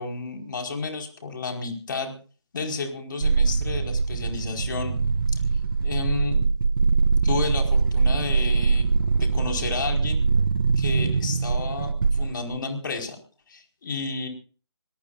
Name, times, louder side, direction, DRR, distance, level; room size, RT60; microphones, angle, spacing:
voice 1, 0.0-2.1 2.5-5.0 5.8-6.5 7.2-8.8 9.2-10.2 10.8-13.2 13.5-14.3, left 4 dB, 45° left, 3 dB, 4.8 m, -31 dB
sound 1, 3.2-12.6, right 4 dB, 55° right, 0.8 m, -23 dB
25.5 x 19.0 x 2.5 m, 0.38 s
figure-of-eight pair, 145°, 14 cm